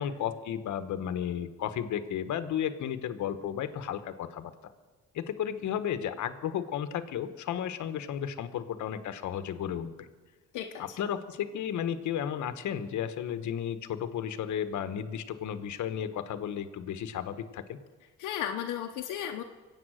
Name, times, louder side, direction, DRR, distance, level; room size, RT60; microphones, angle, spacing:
voice 1, 0.0-4.7 5.1-10.1 10.8-17.8, left 9 dB, 75° left, 11 dB, 1.1 m, -33 dB
voice 2, 10.5-11.0 18.2-19.4, left 10 dB, 90° left, 3 dB, 0.9 m, -35 dB
24.0 x 8.5 x 6.3 m, 1.4 s
cardioid pair, 90°, 30 cm